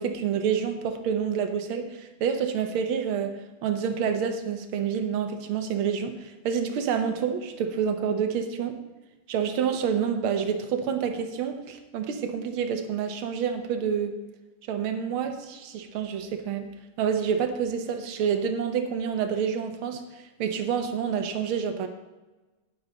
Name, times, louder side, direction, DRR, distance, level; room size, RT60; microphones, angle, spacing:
voice 1, 0.0-8.8 9.3-14.2 14.7-16.7 17.0-20.0 20.4-21.9, right 7 dB, 80° right, 7 dB, 1.8 m, -28 dB
9.8 x 9.8 x 3.9 m, 1.1 s
omnidirectional pair, 2.3 m